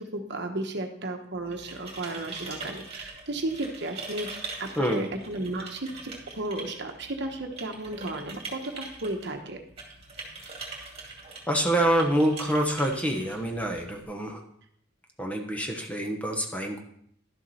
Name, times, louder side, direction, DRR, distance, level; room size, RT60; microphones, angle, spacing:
voice 1, 0.0-4.3 4.6-9.6, right 2 dB, 55° right, 4 dB, 1.2 m, -34 dB
sound 1, 1.3-14.0, right 3 dB, 30° right, 2.4 m, -43 dB
voice 2, 4.8-5.1 11.5-14.4 15.2-16.9, right 1 dB, 5° left, 2 dB, 1.2 m, -26 dB
12.0 x 7.2 x 4.3 m, 0.68 s
head